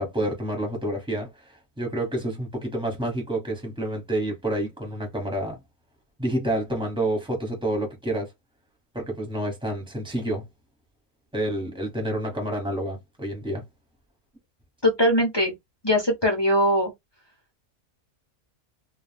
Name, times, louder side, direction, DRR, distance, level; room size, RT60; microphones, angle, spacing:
voice 1, 0.0-5.6 6.2-8.3 8.9-10.4 11.3-13.6, right 1 dB, 5° right, 0.8 m, -29 dB
voice 2, 14.8-15.5 15.8-16.9, equal, 35° left, 0.4 m, -21 dB
2.3 x 2.2 x 3.2 m
omnidirectional pair, 1.5 m